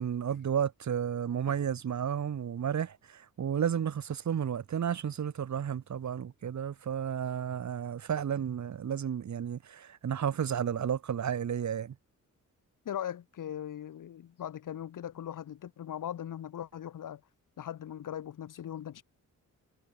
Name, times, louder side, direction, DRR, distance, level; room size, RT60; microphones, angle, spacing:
voice 1, 0.0-11.9, right 8 dB, 65° right, 5.0 m, -32 dB
voice 2, 12.8-17.2 17.6-19.0, left 10 dB, 85° left, 5.1 m, -39 dB
wide cardioid pair, 140°, 31 cm